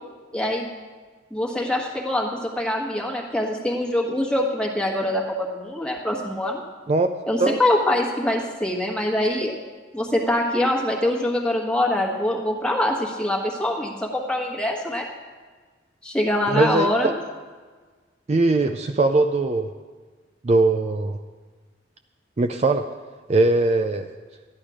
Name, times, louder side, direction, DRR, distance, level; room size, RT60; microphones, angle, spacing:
voice 1, 0.3-0.7 1.3-6.6 7.3-9.5 9.9-15.1 16.0-17.1, left 1 dB, 5° left, -1 dB, 1.4 m, -24 dB
voice 2, 16.5-17.1 18.3-19.7 20.4-21.2 22.4-22.8 23.3-24.1, right 2 dB, 35° right, 6 dB, 0.4 m, -20 dB
13.5 x 10.5 x 5.0 m, 1.4 s
head